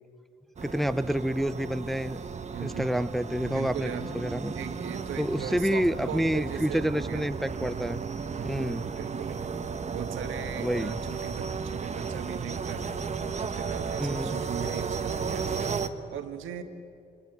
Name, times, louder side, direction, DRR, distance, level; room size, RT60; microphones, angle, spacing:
voice 1, 0.6-2.2 2.6-4.5 5.2-8.0 8.4-8.8 10.6-11.0 14.0-14.4, equal, ahead, 12 dB, 0.6 m, -28 dB
sound 1, 0.6-15.9, right 5 dB, 35° right, 1.2 m, -34 dB
voice 2, 2.5-3.1 3.4-4.1 4.5-7.3 7.6-13.0 13.4-16.6, right 9 dB, 85° right, 7 dB, 1.7 m, -39 dB
25.0 x 23.0 x 9.3 m, 2.6 s
cardioid pair, 90°, 20 cm